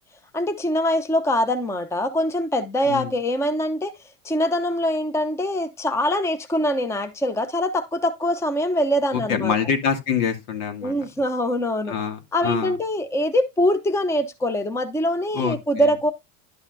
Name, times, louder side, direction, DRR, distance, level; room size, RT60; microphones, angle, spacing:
voice 1, 0.3-3.9 4.2-9.5 10.8-11.9 12.3-16.1, left 1 dB, 5° left, 0.8 m, -23 dB
voice 2, 9.1-10.9 11.9-12.7 15.3-15.6, left 7 dB, 70° left, 2.6 m, -25 dB
11.5 x 5.8 x 2.7 m
hypercardioid pair, 100°, 46 cm